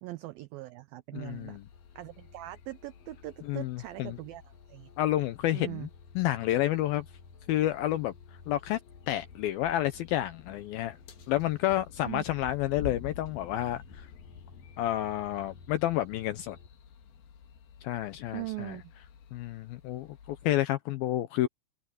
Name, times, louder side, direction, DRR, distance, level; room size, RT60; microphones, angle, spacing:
voice 1, 0.0-1.6 2.0-4.9 5.5-5.9 12.0-12.3 18.3-18.9, right 19 dB, 90° right, 2.0 m, -41 dB
voice 2, 1.1-1.6 3.5-4.2 5.0-5.9 6.2-7.1 7.5-8.1 8.5-8.8 9.1-11.0 11.3-14.0 14.8-16.6 17.8-18.7 19.3-21.5, left 14 dB, 80° left, 2.2 m, -30 dB
sound 1, 1.3-20.6, left 7 dB, 65° left, 3.8 m, -49 dB
sound 2, 1.7-16.7, left 3 dB, 40° left, 5.8 m, -57 dB
omnidirectional pair, 5.0 m